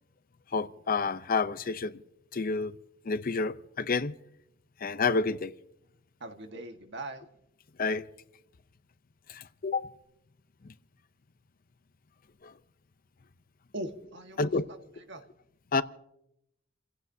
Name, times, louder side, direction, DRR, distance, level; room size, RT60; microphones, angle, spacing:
voice 1, 0.5-2.0 2.3-2.8 3.0-4.1 4.8-5.5 7.8-8.0 9.3-9.9 10.6-10.7 12.4-12.5 14.4-14.6 15.7-15.8, left 4 dB, 45° left, 0.6 m, -29 dB
voice 2, 6.2-7.2 13.7-14.5 15.1-15.2, right 1 dB, 65° right, 1.6 m, -40 dB
30.0 x 16.0 x 2.7 m
head